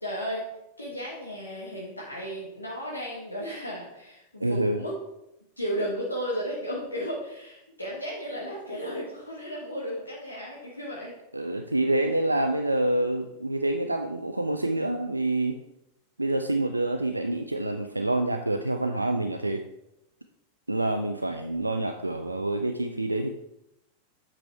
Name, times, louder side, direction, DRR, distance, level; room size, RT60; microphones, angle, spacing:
voice 1, 0.0-0.4 0.8-4.9 5.6-11.1, equal, 85° left, -4 dB, 1.3 m, -34 dB
voice 2, 4.4-4.8 11.3-15.6 16.2-19.7 20.7-23.3, right 2 dB, 85° right, 5 dB, 0.4 m, -27 dB
7.8 x 4.7 x 4.4 m, 0.85 s
figure-of-eight pair, 90°, 0 cm